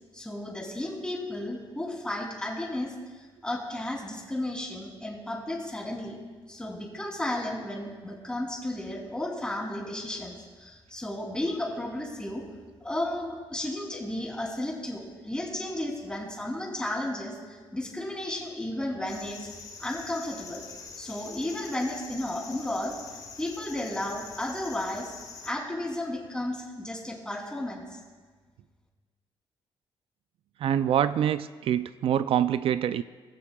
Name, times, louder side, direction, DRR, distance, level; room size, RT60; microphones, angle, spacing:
voice 1, 0.1-6.2 6.5-12.4 12.8-19.5 19.8-20.6 21.0-23.0 23.4-25.1 25.4-28.0, left 1 dB, 10° left, -2 dB, 3.0 m, -33 dB
sound 1, 19.1-25.5, left 5 dB, 40° left, 2.0 m, -45 dB
voice 2, 30.6-33.0, right 10 dB, 70° right, 13 dB, 0.4 m, -25 dB
19.0 x 15.5 x 2.3 m, 1.4 s
cardioid pair, 115°, 10 cm